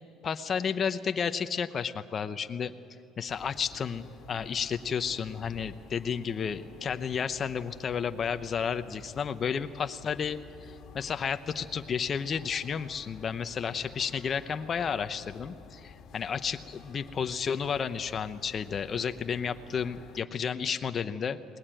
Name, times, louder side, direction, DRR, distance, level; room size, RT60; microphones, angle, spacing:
voice 1, 0.2-2.7 3.2-10.4 10.9-21.4, left 7 dB, 40° left, 9 dB, 0.8 m, -32 dB
sound 1, 3.3-20.2, left 6 dB, 60° left, 2.0 m, -51 dB
20.5 x 20.0 x 9.0 m, 2.6 s
cardioid pair, 110°, 0 cm